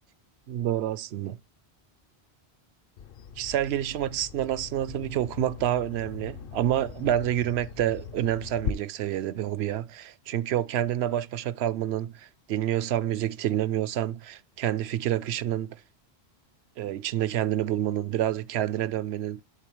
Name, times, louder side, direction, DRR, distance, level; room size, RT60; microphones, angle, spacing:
voice 1, 0.5-1.4 3.4-15.8 16.8-19.4, right 12 dB, 75° right, 0.8 m, -28 dB
Bird vocalization bird call bird song, 3.0-8.7, left 8 dB, 65° left, 0.7 m, -40 dB
11.5 x 3.9 x 3.0 m
omnidirectional pair, 1.1 m